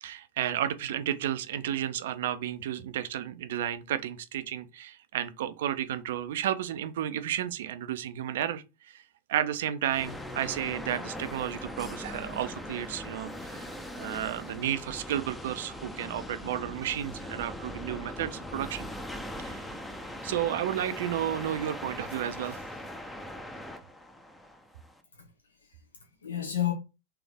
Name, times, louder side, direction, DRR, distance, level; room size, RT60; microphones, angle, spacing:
voice 1, 0.0-9.0 9.3-18.9 19.4-19.7 20.2-22.6, right 11 dB, 55° right, 0.5 m, -32 dB
sound 1, 9.9-25.0, left 1 dB, 5° left, 0.6 m, -40 dB
voice 2, 25.1-26.7, left 12 dB, 70° left, 0.8 m, -33 dB
3.5 x 3.3 x 3.5 m
figure-of-eight pair, 90°, 0 cm